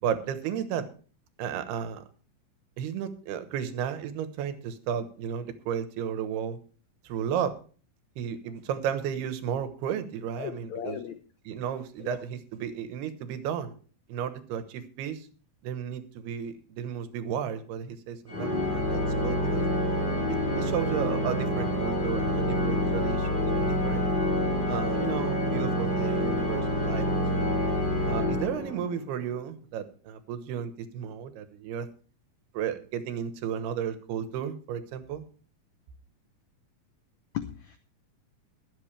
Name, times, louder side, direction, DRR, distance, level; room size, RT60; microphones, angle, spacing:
voice 1, 0.0-0.9 1.4-2.0 2.8-6.6 7.0-7.6 8.2-11.0 11.5-13.7 14.1-15.3 15.6-19.7 20.3-24.1 24.7-27.1 27.3-27.5 28.1-31.9 32.5-35.2, right 8 dB, 85° right, 10 dB, 3.2 m, -33 dB
voice 2, 10.4-11.2 12.0-12.2 37.3-37.8, left 9 dB, 85° left, 9 dB, 1.6 m, -36 dB
Organ, 18.3-29.1, equal, 25° left, 1.1 m, -27 dB
22.0 x 8.2 x 3.3 m, 0.39 s
omnidirectional pair, 4.5 m